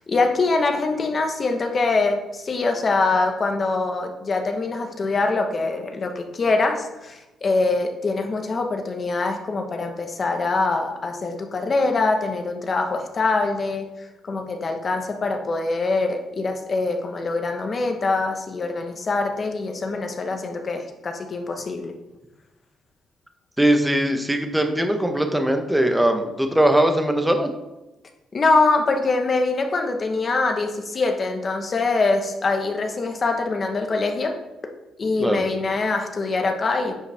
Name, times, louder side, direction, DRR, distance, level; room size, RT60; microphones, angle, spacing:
voice 1, 0.0-21.9 28.3-34.3 35.0-36.9, left 3 dB, 40° left, 4 dB, 1.2 m, -24 dB
voice 2, 23.6-27.5 35.2-35.5, right 1 dB, 5° right, 5 dB, 1.0 m, -20 dB
9.6 x 5.5 x 3.5 m, 1.0 s
cardioid pair, 90°, 0 cm